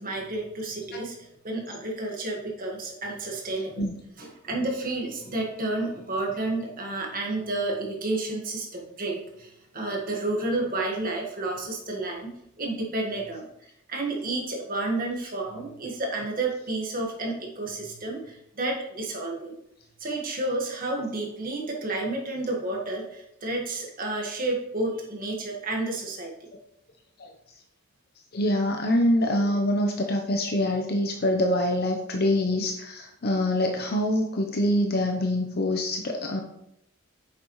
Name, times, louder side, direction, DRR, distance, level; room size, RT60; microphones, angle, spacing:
voice 1, 0.0-3.9 4.2-13.5 13.9-19.5 20.0-26.5, right 2 dB, 45° right, 0 dB, 1.6 m, -31 dB
voice 2, 28.3-36.4, left 1 dB, 50° left, 3 dB, 0.7 m, -25 dB
8.4 x 6.6 x 3.1 m, 0.80 s
head